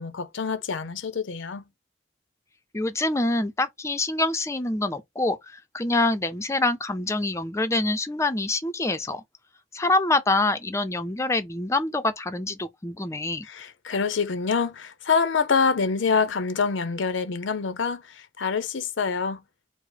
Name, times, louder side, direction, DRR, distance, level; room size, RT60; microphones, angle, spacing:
voice 1, 0.0-1.7 13.4-19.4, left 5 dB, 85° left, 0.6 m, -26 dB
voice 2, 2.7-9.2 9.7-13.5, left 2 dB, 15° left, 0.4 m, -25 dB
4.7 x 2.0 x 4.0 m
head